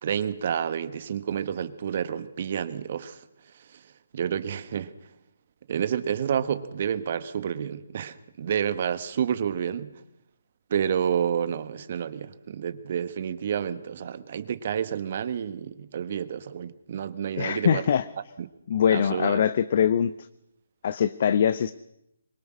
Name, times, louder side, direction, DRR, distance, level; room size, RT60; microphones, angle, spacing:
voice 1, 0.0-3.2 3.7-3.8 4.1-4.9 5.7-9.9 10.7-17.8 18.4-18.5 18.9-19.4, right 8 dB, 45° right, 1.7 m, -29 dB
voice 2, 17.4-18.0 18.7-20.1 20.8-21.7, left 8 dB, 45° left, 0.8 m, -22 dB
24.5 x 22.5 x 6.4 m
figure-of-eight pair, 145°, 0 cm